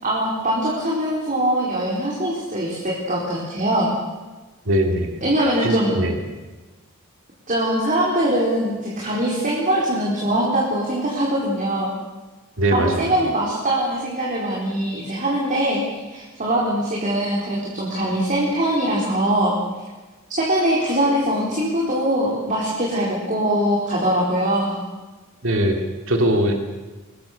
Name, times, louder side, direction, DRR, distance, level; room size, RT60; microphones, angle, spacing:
voice 1, 0.0-3.9 5.2-6.0 7.5-11.9 12.7-19.5 20.3-24.8, right 1 dB, 35° right, -4 dB, 4.3 m, -22 dB
voice 2, 4.7-5.2 5.6-6.2 12.6-13.0 25.4-25.8 26.1-26.6, right 1 dB, 65° right, 3 dB, 2.9 m, -20 dB
24.5 x 20.5 x 6.7 m, 1.2 s
head